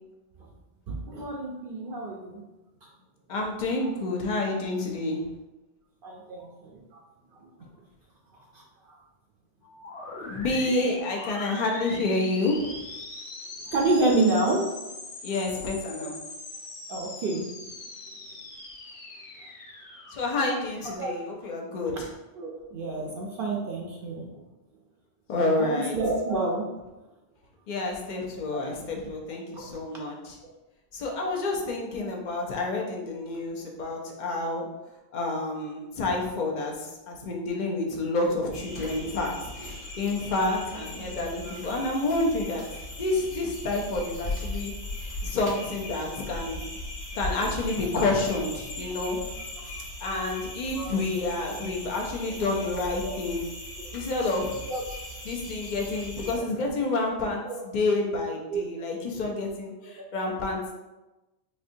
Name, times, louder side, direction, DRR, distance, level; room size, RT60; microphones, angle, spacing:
voice 1, 0.9-2.4 2.8-2.9 3.7-3.9 6.0-7.0 7.3-7.5 8.3-9.0 13.6-14.6 16.9-17.5 21.0-21.5 21.9-22.0 22.4-24.4 25.6-26.7 28.5-28.6 29.5-29.9 38.8-38.9 47.8-48.1 50.7-50.9 52.3-52.4 53.0-53.1 53.8-53.9 54.7-54.8 57.4-57.6 58.5-58.6 59.1-59.2 59.8-60.0, right 2 dB, 60° right, -1 dB, 0.7 m, -29 dB
voice 2, 3.3-5.2 10.3-12.8 15.2-16.1 20.1-22.1 25.3-25.9 27.7-30.4 30.9-34.7 35.1-42.6 43.0-44.7 45.0-46.6 47.2-49.2 50.0-53.4 53.9-54.6 55.3-60.8, left 2 dB, 50° left, 0 dB, 0.7 m, -29 dB
sound 1, 9.6-21.3, left 2 dB, 85° left, 1.0 m, -41 dB
sound 2, 38.5-56.3, left 1 dB, 35° left, 1.2 m, -38 dB
4.2 x 2.7 x 2.6 m, 1.1 s
omnidirectional pair, 1.1 m